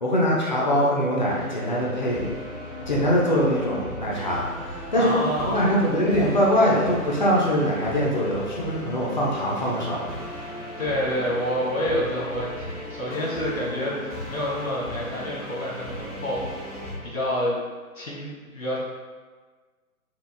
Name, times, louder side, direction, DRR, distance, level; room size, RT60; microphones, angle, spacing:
voice 1, 0.0-2.3 2.9-5.1 5.4-10.1, equal, 30° left, -4 dB, 0.6 m, -23 dB
sound 1, 1.2-17.0, left 1 dB, 25° right, 0.6 m, -37 dB
voice 2, 5.0-5.7 10.8-16.8 17.0-17.6 17.9-18.8, equal, 65° left, -5 dB, 1.3 m, -28 dB
3.9 x 3.3 x 2.2 m, 1.4 s
figure-of-eight pair, 140°, 44 cm